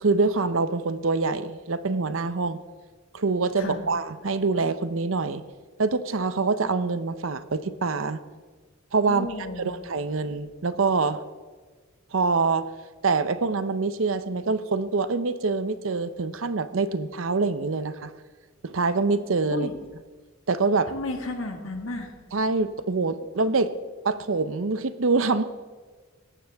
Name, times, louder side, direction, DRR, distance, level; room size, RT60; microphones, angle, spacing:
voice 1, 0.0-2.6 3.1-5.4 5.8-8.2 8.9-9.3 9.6-11.2 12.1-12.7 13.0-18.1 18.6-19.7 20.5-20.9 22.3-23.7 24.0-25.4, right 4 dB, 85° right, 13 dB, 0.7 m, -25 dB
voice 2, 9.1-9.8 19.5-19.7 20.9-22.1, left 2 dB, 85° left, 4 dB, 1.9 m, -32 dB
18.5 x 14.5 x 3.5 m, 1.4 s
head